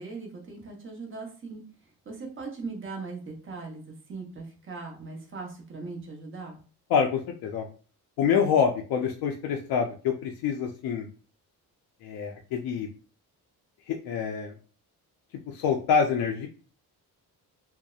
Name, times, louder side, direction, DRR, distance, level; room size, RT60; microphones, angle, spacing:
voice 1, 0.0-1.6 2.0-6.6, right 4 dB, 30° right, 0 dB, 0.8 m, -39 dB
voice 2, 6.9-7.6 8.2-11.1 12.0-12.9 13.9-14.6 15.5-16.5, left 7 dB, 70° left, 2 dB, 0.5 m, -26 dB
2.7 x 2.0 x 2.3 m, 0.38 s
cardioid pair, 115°, 38 cm